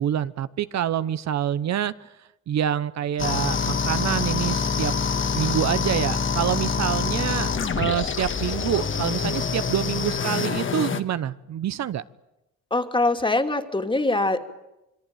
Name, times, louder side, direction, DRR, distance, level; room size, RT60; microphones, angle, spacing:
voice 1, 0.0-2.1 2.5-4.9 5.3-12.0, right 10 dB, 60° right, 14 dB, 1.0 m, -26 dB
sound 1, 3.2-11.0, left 5 dB, 40° left, 2.0 m, -26 dB
voice 2, 12.7-14.4, left 2 dB, 15° left, 7 dB, 2.7 m, -23 dB
26.5 x 23.0 x 9.1 m, 0.92 s
cardioid pair, 90°, 30 cm